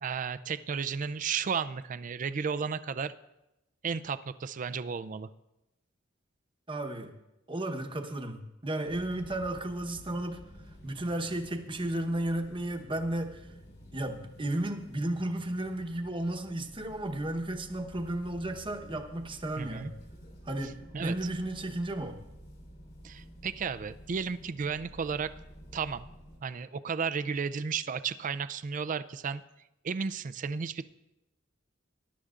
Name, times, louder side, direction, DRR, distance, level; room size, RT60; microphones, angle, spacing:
voice 1, 0.0-3.1 3.8-5.3 19.6-19.9 20.9-21.1 23.0-25.3 25.7-26.1 26.4-29.4 29.8-30.8, right 6 dB, 40° right, 14 dB, 0.4 m, -33 dB
voice 2, 6.7-7.1 7.5-10.4 10.8-13.5 13.9-19.9 20.4-22.2, right 1 dB, 25° right, 4 dB, 1.0 m, -33 dB
sound 1, 8.8-26.4, equal, 50° left, 3.8 m, -51 dB
20.5 x 11.5 x 2.5 m, 0.94 s
head